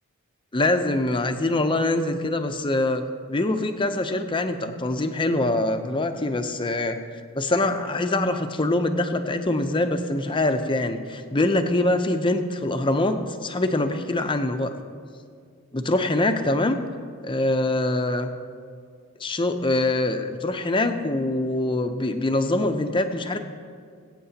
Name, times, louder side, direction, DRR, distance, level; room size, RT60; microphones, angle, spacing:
voice 1, 0.5-7.0 7.4-14.7 15.7-16.8 17.2-18.3 19.2-23.4, left 2 dB, 20° left, 7 dB, 0.6 m, -24 dB
21.0 x 8.6 x 2.8 m, 2.2 s
head